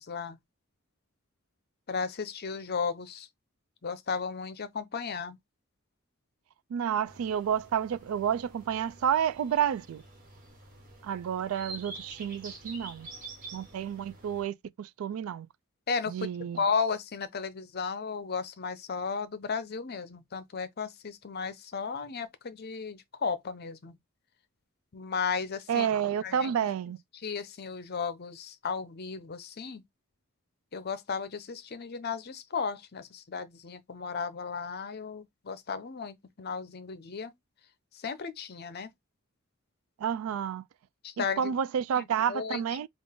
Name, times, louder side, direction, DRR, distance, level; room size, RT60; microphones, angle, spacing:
voice 1, 0.1-0.4 1.9-3.3 3.8-5.4 15.9-23.9 24.9-25.9 26.2-26.5 27.1-29.8 30.7-37.3 37.9-38.9 41.0-41.6 42.0-42.6, left 5 dB, 50° left, 0.6 m, -34 dB
voice 2, 6.7-10.0 11.0-13.1 13.5-15.5 16.1-16.6 25.7-27.0 40.0-40.6 41.2-42.9, right 8 dB, 80° right, 0.3 m, -30 dB
sound 1, 7.1-14.4, right 2 dB, 40° right, 1.4 m, -48 dB
3.8 x 2.4 x 3.5 m
head